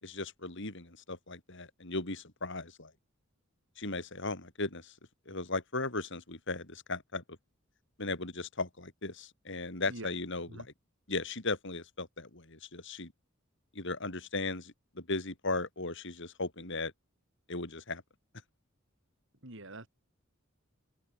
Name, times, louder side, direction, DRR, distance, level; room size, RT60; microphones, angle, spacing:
voice 1, 0.0-2.9 3.8-4.9 5.2-7.2 8.0-10.7 11.1-13.1 13.7-16.9 17.5-18.0, left 3 dB, 60° left, 5.1 m, -37 dB
voice 2, 19.4-19.9, right 2 dB, 65° right, 3.9 m, -45 dB
head